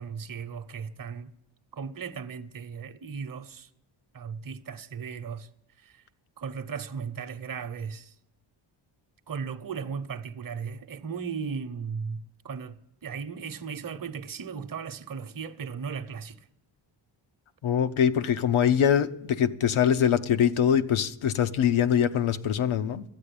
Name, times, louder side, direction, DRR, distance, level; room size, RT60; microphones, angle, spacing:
voice 1, 0.0-1.3 1.7-3.7 4.1-5.5 5.8-6.0 6.4-8.1 9.3-12.8 13.0-16.5, right 6 dB, 45° right, 0.9 m, -36 dB
voice 2, 17.6-23.0, left 8 dB, 80° left, 0.8 m, -23 dB
12.0 x 8.8 x 8.5 m
cardioid pair, 85°, 48 cm